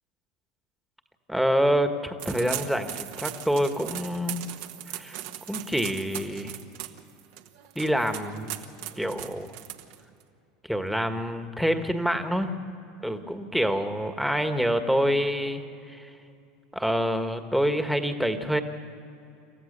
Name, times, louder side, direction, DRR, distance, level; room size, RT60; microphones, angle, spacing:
voice 1, 1.3-4.4 4.9-5.2 5.5-6.6 7.7-8.6 9.0-9.5 10.6-12.6 13.0-16.1 16.7-18.6, equal, ahead, 7 dB, 1.6 m, -27 dB
sound 1, 2.2-10.2, right 13 dB, 70° right, 1.3 m, -38 dB
28.0 x 14.5 x 6.8 m, 2.6 s
hypercardioid pair, 100°, 0 cm